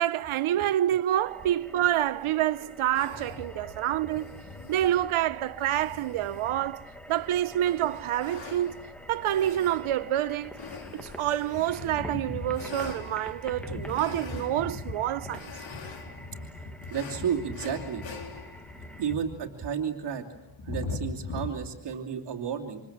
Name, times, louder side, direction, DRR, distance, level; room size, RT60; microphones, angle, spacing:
voice 1, 0.0-4.4 4.7-8.8 9.1-10.5 10.9-15.5, right 12 dB, 90° right, 1.0 m, -27 dB
sound 1, 1.1-19.1, equal, ahead, 1.3 m, -48 dB
sound 2, 2.9-21.5, left 3 dB, 70° left, 4.0 m, -41 dB
voice 2, 16.9-18.1 19.0-20.2 20.7-22.8, right 7 dB, 55° right, 2.9 m, -32 dB
28.5 x 26.5 x 7.3 m
wide cardioid pair, 165°, 48 cm